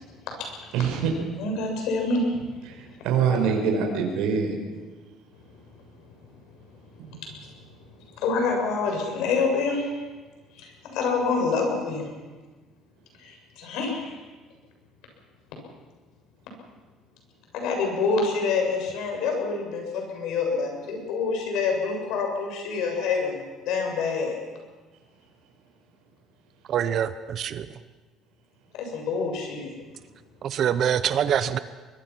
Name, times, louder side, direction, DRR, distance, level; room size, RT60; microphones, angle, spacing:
voice 1, 0.7-1.1 2.7-4.5 7.0-7.2, right 6 dB, 80° right, 1 dB, 5.1 m, -24 dB
voice 2, 1.4-2.8 8.2-10.0 10.6-12.1 13.2-14.1 17.5-23.4 23.7-24.4 28.7-29.7, left 4 dB, 70° left, 2 dB, 7.4 m, -27 dB
voice 3, 26.7-27.7 30.4-31.6, right 9 dB, 40° right, 12 dB, 0.8 m, -25 dB
24.5 x 21.5 x 6.1 m, 1.3 s
cardioid pair, 165°, 0 cm